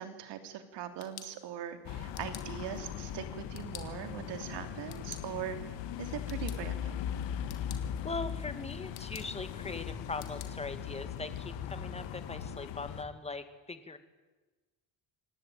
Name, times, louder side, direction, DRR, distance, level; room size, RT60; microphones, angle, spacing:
voice 1, 0.0-5.6 6.0-6.9, right 10 dB, 75° right, 8 dB, 3.3 m, -41 dB
sound 1, 0.7-12.5, left 10 dB, 60° left, 3.3 m, -55 dB
sound 2, 1.8-13.0, left 9 dB, 80° left, 1.9 m, -39 dB
voice 2, 8.0-14.0, left 3 dB, 15° left, 10 dB, 2.2 m, -40 dB
26.0 x 19.0 x 9.4 m, 1.2 s
cardioid pair, 120°, 42 cm